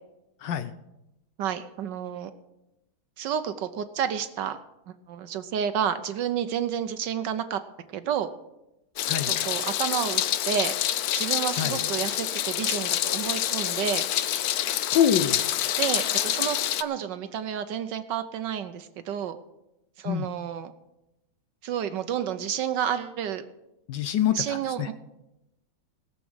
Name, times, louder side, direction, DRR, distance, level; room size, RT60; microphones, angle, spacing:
voice 1, 1.4-2.3 3.2-4.6 4.9-7.6 7.9-8.3 9.3-10.7 11.1-14.1 15.8-19.4 20.0-20.7 21.6-23.4 24.3-24.9, right 9 dB, 70° right, 10 dB, 1.2 m, -30 dB
Meow, 9.0-16.8, left 12 dB, 85° left, 0.8 m, -27 dB
voice 2, 9.0-9.3 11.6-11.8 14.9-15.4 20.0-20.3 23.9-24.9, left 9 dB, 70° left, 12 dB, 1.2 m, -25 dB
17.5 x 7.3 x 6.3 m, 0.91 s
omnidirectional pair, 2.3 m